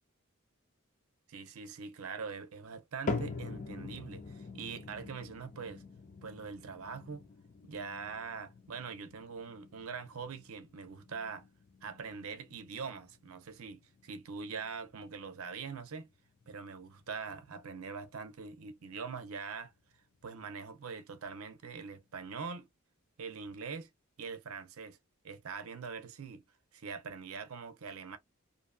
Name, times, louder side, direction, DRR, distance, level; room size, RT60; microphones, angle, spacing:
voice 1, 1.3-5.8 6.2-7.3 7.6-11.5 11.8-16.1 16.5-19.7 20.2-22.7 23.2-23.9 24.2-25.0 25.2-26.4 26.7-28.2, right 5 dB, 75° right, 0.6 m, -43 dB
sound 1, 3.1-19.4 19.7-20.2 20.8-20.9 21.7-21.8, left 3 dB, 35° left, 0.5 m, -45 dB
2.6 x 2.2 x 2.5 m
head